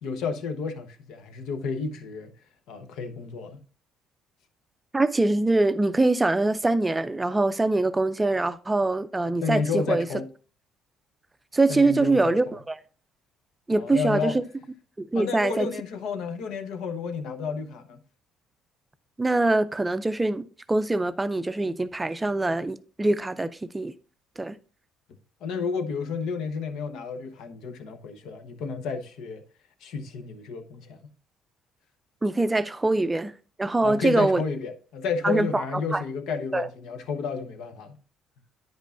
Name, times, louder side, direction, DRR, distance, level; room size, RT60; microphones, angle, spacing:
voice 1, 0.0-2.3 2.7-3.6 9.4-10.3 11.7-12.6 13.7-14.4 15.1-18.0 25.4-29.4 29.8-31.1 33.8-38.0, left 5 dB, 75° left, 0.9 m, -31 dB
voice 2, 4.9-10.1 11.5-12.8 13.7-14.4 15.0-15.7 19.2-23.9 24.4-24.6 32.2-33.3 33.6-34.4 35.2-35.6 35.9-36.0 36.5-36.7, right 2 dB, 15° right, 0.4 m, -23 dB
9.3 x 5.2 x 2.5 m
cardioid pair, 115°, 0 cm